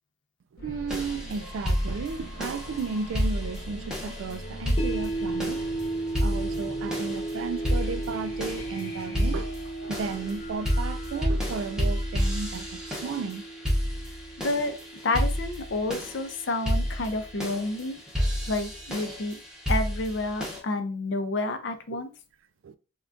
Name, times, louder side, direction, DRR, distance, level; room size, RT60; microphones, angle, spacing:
voice 1, 0.5-5.6 6.2-9.5 9.8-13.4 21.9-22.0 22.6-22.8, right 5 dB, 90° right, 0.3 m, -34 dB
sound 1, 0.6-13.3, equal, 55° left, 1.0 m, -42 dB
sound 2, 0.9-20.6, equal, 5° right, 0.8 m, -31 dB
sound 3, 4.8-16.9, right 2 dB, 30° left, 0.8 m, -36 dB
voice 2, 14.4-14.7 15.0-18.0 18.5-19.4 19.7-22.1, left 2 dB, 70° left, 0.5 m, -29 dB
3.6 x 2.2 x 2.5 m
head